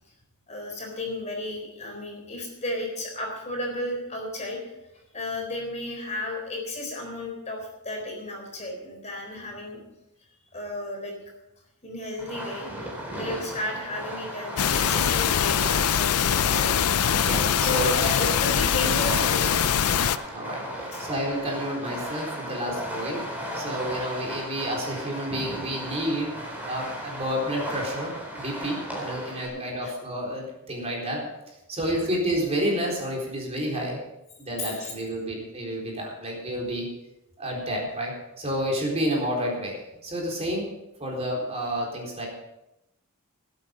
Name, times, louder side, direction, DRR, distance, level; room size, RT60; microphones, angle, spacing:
voice 1, 0.5-4.6 5.1-9.8 10.5-11.1 11.8-16.8 17.6-19.7 20.9-21.1 29.4-29.5 29.8-29.9 31.8-32.1 34.6-34.9, left 1 dB, 30° left, 1 dB, 4.0 m, -33 dB
Fireworks, 12.2-29.5, equal, 5° right, 3.9 m, -35 dB
sound 1, 14.6-20.2, left 8 dB, 85° left, 0.6 m, -23 dB
voice 2, 17.2-18.1 20.3-23.2 23.5-26.3 26.7-31.2 31.7-34.0 34.4-36.9 37.4-40.7 41.0-42.3, equal, 30° right, -2 dB, 4.0 m, -30 dB
19.0 x 8.7 x 5.2 m, 0.91 s
head